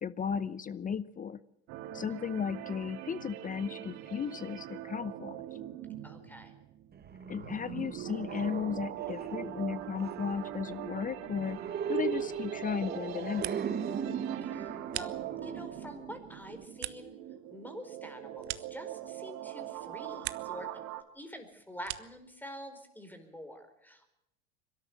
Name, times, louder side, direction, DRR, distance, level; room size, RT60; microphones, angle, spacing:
voice 1, 0.0-1.4 1.9-5.4 7.3-11.6 11.9-13.6, left 7 dB, 25° left, 17 dB, 0.8 m, -35 dB
sound 1, 1.7-21.0, right 12 dB, 60° right, 2.0 m, -43 dB
voice 2, 6.0-6.5 14.4-17.1 17.5-20.8 21.1-24.2, equal, 5° left, 8 dB, 4.5 m, -47 dB
sound 2, 6.9-16.7, right 7 dB, 30° right, 1.7 m, -38 dB
sound 3, 13.1-13.9 14.2-15.7 16.1-19.4 19.7-20.7 21.0-22.3, right 15 dB, 85° right, 0.9 m, -44 dB
23.0 x 13.0 x 9.3 m, 0.84 s
hypercardioid pair, 85°, 32 cm